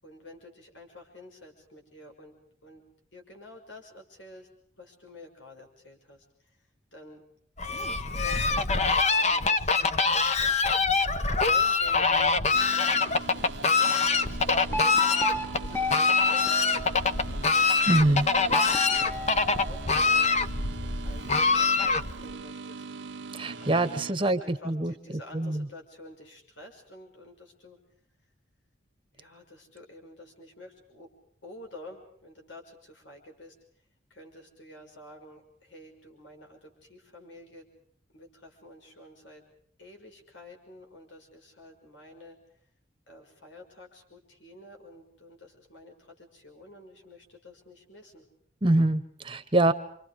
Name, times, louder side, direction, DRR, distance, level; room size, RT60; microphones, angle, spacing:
voice 1, 0.0-2.3 2.6-2.8 3.1-4.5 4.7-7.2 7.7-10.9 11.2-12.6 13.1-15.0 15.6-19.3 19.6-20.3 20.8-22.9 23.6-27.8 28.2-28.3 29.1-31.1 31.4-33.6 34.1-37.7 38.1-39.4 39.8-42.6 43.1-48.2, left 1 dB, 80° left, 3 dB, 6.0 m, -50 dB
Fowl, 7.6-22.3, left 4 dB, 35° left, 1.1 m, -25 dB
sound 1, 12.5-24.1, right 4 dB, 80° right, 1.0 m, -41 dB
sound 2, 14.7-17.4 18.5-20.3, left 2 dB, 10° left, 1.1 m, -34 dB
voice 2, 17.9-18.3 23.3-24.9 25.3-25.7 48.6-49.7, right 2 dB, 25° right, 10 dB, 1.1 m, -24 dB
29.5 x 26.5 x 5.0 m, 0.64 s
head